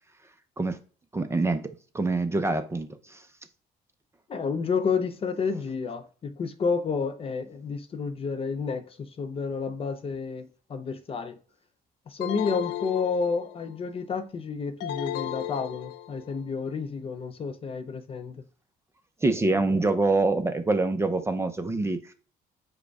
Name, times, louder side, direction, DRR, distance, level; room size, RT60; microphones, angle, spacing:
voice 1, 1.1-3.2 19.2-22.1, right 3 dB, 15° right, 0.5 m, -25 dB
voice 2, 4.3-11.4 12.1-18.4, left 5 dB, 35° left, 0.5 m, -30 dB
sound 1, 12.2-13.8 14.8-16.4, left 12 dB, 85° left, 0.4 m, -35 dB
5.0 x 2.2 x 4.6 m
cardioid pair, 110°, 17 cm